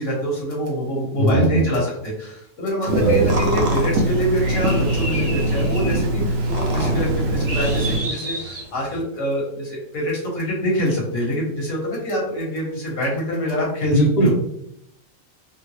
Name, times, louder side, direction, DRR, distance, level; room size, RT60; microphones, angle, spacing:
voice 1, 0.0-14.3, equal, 70° left, -3 dB, 1.6 m, -25 dB
voice 2, 1.2-1.7 3.0-3.3 13.9-14.3, right 1 dB, 40° left, -2 dB, 0.8 m, -19 dB
sound 1, 2.8-9.0, right 1 dB, 50° right, 0.5 m, -31 dB
Telephone, 2.9-8.0, right 2 dB, 85° right, 1.0 m, -22 dB
3.7 x 2.2 x 3.1 m, 0.74 s
omnidirectional pair, 1.4 m